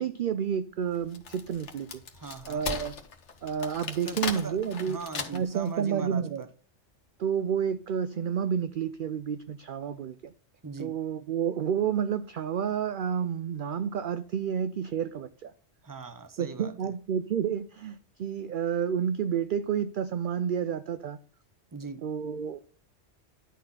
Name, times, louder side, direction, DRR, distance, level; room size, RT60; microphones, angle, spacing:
voice 1, 0.0-2.0 2.5-3.0 3.4-5.0 5.3-6.4 7.2-10.3 10.8-15.5 16.4-21.2 22.0-22.6, right 8 dB, 60° right, 0.6 m, -30 dB
Wood, 0.9-5.7, left 5 dB, 75° left, 1.4 m, -37 dB
voice 2, 2.1-2.7 4.1-4.6 4.8-6.5 10.6-11.0 15.8-16.7 21.7-22.0, right 4 dB, 20° right, 0.8 m, -40 dB
11.0 x 4.3 x 5.7 m
omnidirectional pair, 1.2 m